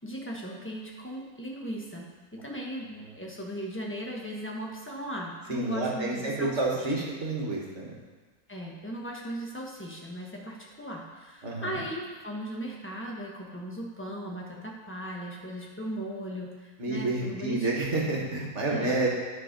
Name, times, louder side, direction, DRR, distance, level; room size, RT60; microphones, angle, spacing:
voice 1, 0.0-7.1 8.5-17.9 18.7-19.1, equal, 10° left, -2 dB, 0.9 m, -38 dB
voice 2, 5.5-8.0 11.4-11.8 16.8-19.1, right 2 dB, 45° right, -2 dB, 1.7 m, -29 dB
9.8 x 4.9 x 5.2 m, 1.3 s
omnidirectional pair, 1.8 m